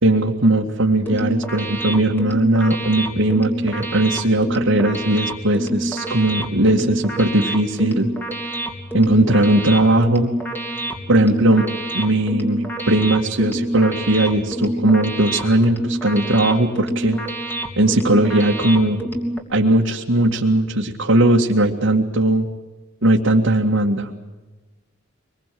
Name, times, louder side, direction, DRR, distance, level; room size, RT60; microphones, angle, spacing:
voice 1, 0.0-8.1 8.9-10.3 11.1-11.7 11.9-17.2 17.8-19.0 19.5-22.5 23.0-24.1, right 1 dB, 75° right, -2 dB, 2.0 m, -18 dB
sound 1, 0.9-19.4, right 1 dB, 10° left, 2.9 m, -27 dB
25.0 x 21.5 x 7.7 m, 1.2 s
head